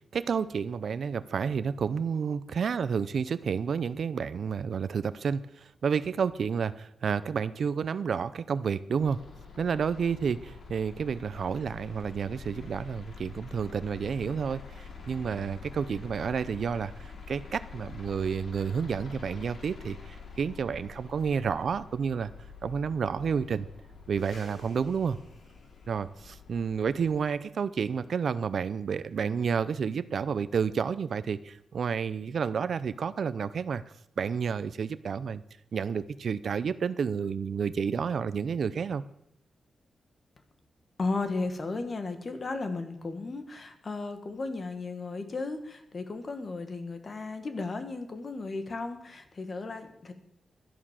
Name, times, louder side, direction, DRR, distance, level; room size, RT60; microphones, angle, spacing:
voice 1, 0.0-9.2 9.6-22.3 22.6-23.7 24.1-25.2 25.9-33.8 34.2-35.4 35.7-39.0, right 6 dB, 55° right, 15 dB, 0.6 m, -30 dB
sound 1, 9.0-27.2, left 5 dB, 60° left, 2.9 m, -46 dB
voice 2, 41.0-50.1, left 3 dB, 35° left, 8 dB, 1.7 m, -35 dB
12.5 x 11.0 x 7.4 m, 0.80 s
wide cardioid pair, 140°, 0 cm